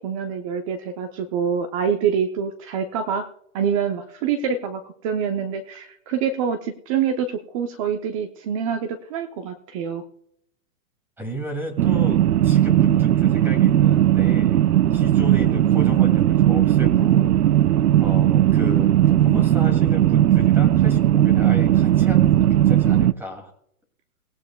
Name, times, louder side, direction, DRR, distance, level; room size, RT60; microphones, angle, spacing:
voice 1, 0.0-3.3 3.5-10.0, right 7 dB, 25° right, 7 dB, 0.6 m, -26 dB
voice 2, 11.2-14.6 14.9-17.4 18.0-18.9 19.2-23.5, left 1 dB, 5° right, 3 dB, 2.4 m, -34 dB
sound 1, 11.8-23.1, right 12 dB, 85° right, 0.6 m, -17 dB
17.5 x 17.5 x 2.2 m, 0.72 s
hypercardioid pair, 140°, 45 cm